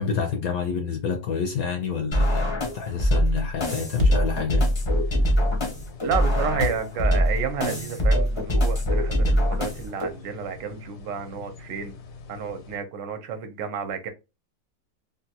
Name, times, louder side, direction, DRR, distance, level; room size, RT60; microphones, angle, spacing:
voice 1, 0.0-4.7, left 6 dB, 70° left, 0.9 m, -28 dB
sound 1, 2.1-10.1, equal, 35° left, 0.4 m, -23 dB
Thump thud, 4.0-8.0, left 4 dB, 55° right, 0.8 m, -33 dB
sound 2, 4.7-12.8, left 4 dB, 85° left, 1.6 m, -44 dB
voice 2, 6.0-11.9 12.3-14.1, right 7 dB, 75° right, 1.3 m, -31 dB
3.7 x 2.2 x 2.7 m
omnidirectional pair, 2.0 m